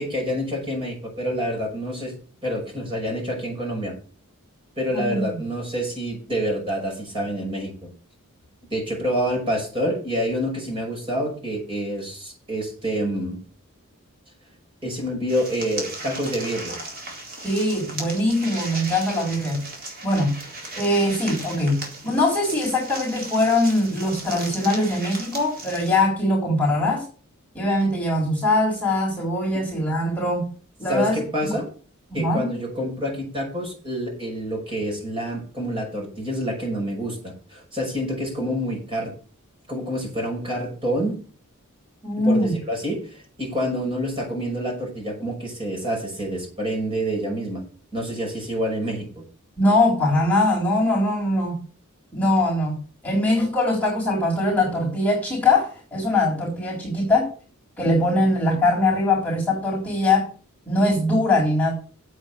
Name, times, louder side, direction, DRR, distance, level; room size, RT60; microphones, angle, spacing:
voice 1, 0.0-2.1 2.4-3.9 4.8-7.9 8.7-13.4 14.8-16.8 29.5-29.7 30.9-31.7 32.1-39.1 39.7-41.2 42.2-47.6 47.9-49.1, equal, 25° right, 0 dB, 5.9 m, -27 dB
voice 2, 4.9-5.3 17.4-19.7 20.0-20.4 20.8-27.0 27.5-30.5 30.8-31.5 32.1-32.5 42.0-42.5 49.6-51.6 52.1-52.8 53.0-57.3 57.8-60.3 60.7-61.7, left 1 dB, 10° left, -5 dB, 4.0 m, -22 dB
sound 1, 15.3-26.0, right 2 dB, 45° right, 4.1 m, -36 dB
8.6 x 8.2 x 6.8 m, 0.40 s
head